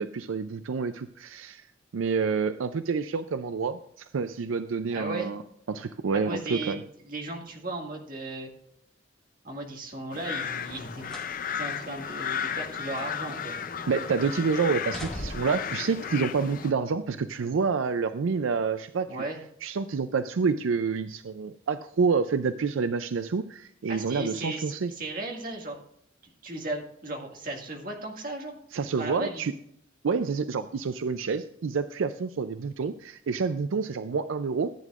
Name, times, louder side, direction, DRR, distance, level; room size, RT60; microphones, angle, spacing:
voice 1, 0.0-1.7 1.9-5.4 5.7-6.8 13.9-19.1 19.6-24.9 28.7-29.5 30.0-34.7, right 5 dB, 80° right, 11 dB, 0.4 m, -28 dB
voice 2, 4.9-5.3 6.2-6.8 7.0-8.5 9.4-11.1 11.6-13.5 19.1-19.4 23.9-25.8 26.2-28.5 29.0-29.4, right 2 dB, 45° right, 1 dB, 2.0 m, -36 dB
sound 1, 10.1-16.7, left 7 dB, 45° left, 0.5 m, -34 dB
sound 2, 10.7-11.4 11.8-11.9 12.6-13.7 14.0-14.3 14.7-15.7 16.6-16.7, equal, 5° left, 1.0 m, -41 dB
14.5 x 9.1 x 2.4 m, 0.72 s
head